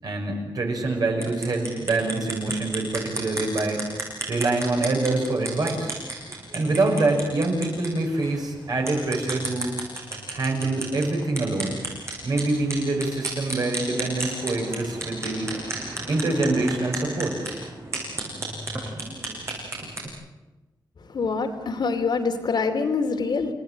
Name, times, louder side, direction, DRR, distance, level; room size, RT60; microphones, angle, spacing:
voice 1, 0.0-3.9 4.3-5.9 6.5-9.7 10.3-11.8 12.2-15.5 16.1-17.4, right 2 dB, 55° right, 2 dB, 6.1 m, -25 dB
sound 1, 1.1-20.1, right 2 dB, 35° right, 7.6 m, -34 dB
voice 2, 21.0-23.5, left 4 dB, 65° left, 4 dB, 2.8 m, -25 dB
29.5 x 18.5 x 8.8 m, 1.1 s
wide cardioid pair, 170°, 8 cm